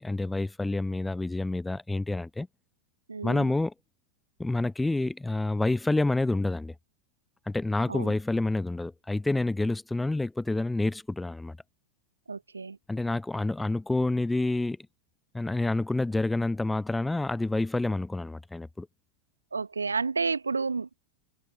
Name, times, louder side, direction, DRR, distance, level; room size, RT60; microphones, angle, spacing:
voice 1, 0.0-2.5 3.2-3.7 4.4-6.7 7.5-11.6 12.9-14.8 15.3-18.9, left 2 dB, 5° left, 0.4 m, -28 dB
voice 2, 3.1-3.5 7.9-8.1 12.3-12.8 19.5-21.1, right 4 dB, 75° right, 0.9 m, -31 dB
figure-of-eight pair, 90°, 0 cm